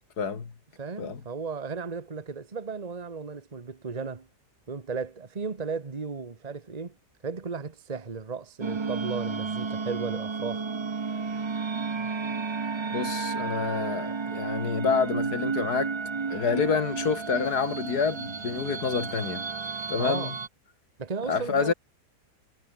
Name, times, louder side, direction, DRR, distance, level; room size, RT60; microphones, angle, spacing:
voice 1, 0.2-0.5 1.0-1.2 12.9-15.9 16.3-19.4 19.9-20.3 21.3-21.7, left 5 dB, 75° left, 2.8 m, -28 dB
voice 2, 0.8-4.3 4.7-7.0 7.2-10.7 20.0-20.4 21.0-21.7, right 5 dB, 25° right, 1.4 m, -35 dB
sound 1, 8.6-20.5, right 4 dB, 40° right, 0.4 m, -32 dB
omnidirectional pair, 1.7 m